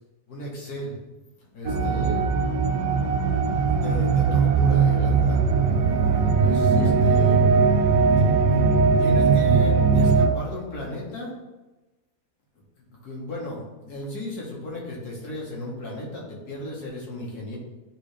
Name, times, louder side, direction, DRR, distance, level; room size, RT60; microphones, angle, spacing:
voice 1, 0.3-1.0 1.4-2.7 3.7-5.4 6.4-7.6 8.2-8.3 8.8-11.3 12.8-17.6, left 1 dB, 65° left, -3 dB, 2.1 m, -35 dB
sound 1, 1.7-10.3, right 5 dB, 80° right, 1.2 m, -20 dB
10.0 x 3.5 x 3.3 m, 1.1 s
omnidirectional pair, 1.7 m